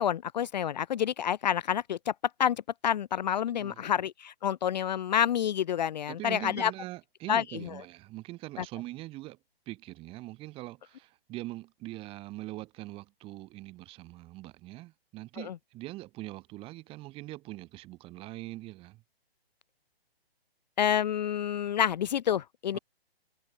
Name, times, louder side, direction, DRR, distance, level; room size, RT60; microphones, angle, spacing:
voice 1, 0.0-2.1 2.4-6.7 7.3-7.4 8.6-8.7 15.4-15.5 20.8-22.8, left 9 dB, 45° left, 0.8 m, -28 dB
voice 2, 3.5-3.8 6.1-9.4 9.7-19.0 22.7-22.8, right 18 dB, 20° right, 2.1 m, -42 dB
hypercardioid pair, 155°, 31 cm